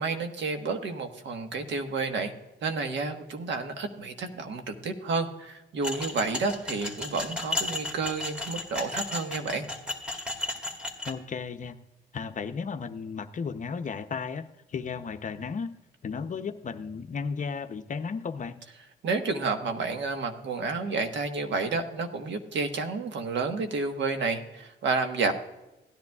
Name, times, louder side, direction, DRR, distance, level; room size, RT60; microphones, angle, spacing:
voice 1, 0.0-2.3 2.6-9.7 19.0-25.3, right 4 dB, 65° right, 6 dB, 1.4 m, -30 dB
sound 1, 5.8-11.1, left 2 dB, 5° right, 1.8 m, -34 dB
voice 2, 11.0-11.8 12.1-15.7 16.0-18.6, left 5 dB, 40° left, 9 dB, 0.7 m, -34 dB
16.5 x 10.5 x 2.4 m, 0.98 s
cardioid pair, 90°, 20 cm